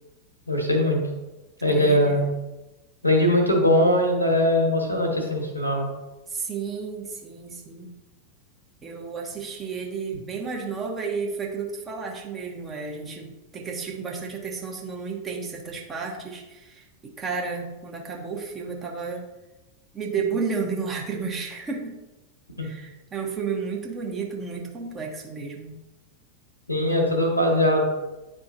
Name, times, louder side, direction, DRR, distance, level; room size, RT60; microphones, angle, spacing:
voice 1, 0.5-1.0 1.6-2.2 3.0-5.9 22.6-22.7 26.7-27.8, left 1 dB, 85° left, 1 dB, 1.5 m, -21 dB
voice 2, 1.7-2.3 6.3-7.9 8.8-19.3 19.9-22.0 22.6-25.8, right 5 dB, 20° right, 0 dB, 1.2 m, -32 dB
10.5 x 3.7 x 2.7 m, 1.1 s
figure-of-eight pair, 90°, 0 cm